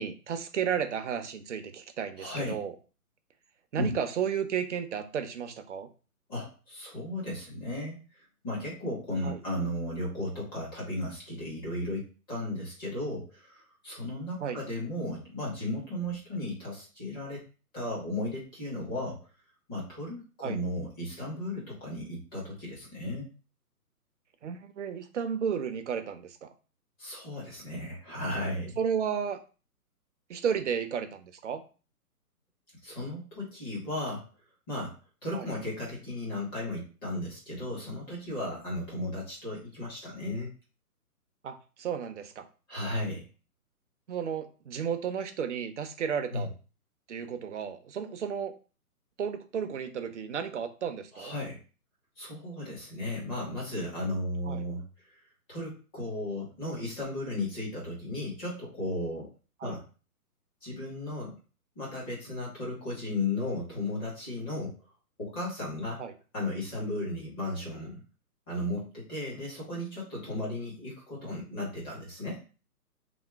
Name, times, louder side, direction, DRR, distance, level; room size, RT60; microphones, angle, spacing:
voice 1, 0.0-2.7 3.7-5.9 9.2-9.4 14.4-14.6 20.4-20.6 24.4-26.5 28.8-29.4 30.3-31.6 35.3-35.5 41.4-42.5 44.1-46.5 47.1-48.5 49.2-51.3 54.5-54.6 59.6-59.8 66.0-66.1, right 7 dB, 50° right, 8 dB, 0.5 m, -33 dB
voice 2, 2.2-2.6 3.8-3.9 6.3-8.0 8.4-17.4 17.7-19.2 19.7-23.3 27.0-28.8 32.8-34.3 34.7-34.9 35.2-40.5 42.7-43.3 46.3-46.5 51.1-51.6 52.2-55.2 55.5-59.3 59.6-59.8 60.6-61.3 61.8-64.7 65.2-66.0 66.3-68.0 68.5-72.4, left 1 dB, 15° left, -6 dB, 0.8 m, -35 dB
2.9 x 2.0 x 3.3 m, 0.35 s
hypercardioid pair, 150°, 46 cm